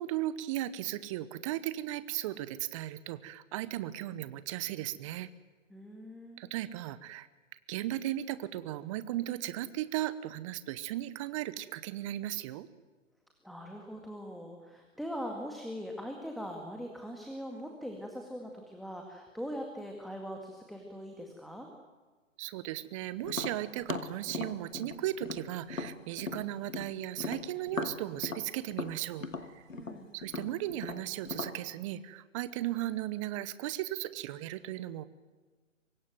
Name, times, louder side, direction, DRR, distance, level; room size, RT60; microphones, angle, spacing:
voice 1, 0.0-5.3 6.4-7.3 7.7-12.7 22.4-29.3 29.5-29.6 30.1-35.0, right 14 dB, 25° right, 15 dB, 1.0 m, -36 dB
voice 2, 5.7-6.5 13.4-21.7 29.7-30.2, equal, ahead, 2 dB, 2.0 m, -41 dB
Tap, 23.3-26.9 27.2-31.6, left 4 dB, 85° left, 2.5 m, -38 dB
24.5 x 21.5 x 9.4 m, 1.3 s
figure-of-eight pair, 135°, 38 cm